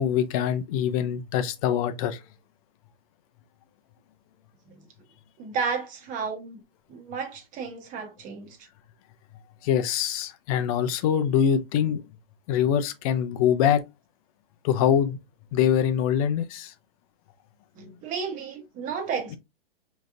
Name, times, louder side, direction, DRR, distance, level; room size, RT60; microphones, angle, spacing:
voice 1, 0.0-2.2 9.6-12.0 12.5-13.8 14.6-15.2 15.5-16.7, left 9 dB, 35° left, 0.6 m, -24 dB
voice 2, 5.4-6.6 6.9-8.6 17.8-19.4, right 5 dB, 25° right, 1.1 m, -32 dB
4.9 x 3.1 x 2.4 m
hypercardioid pair, 125°, 30 cm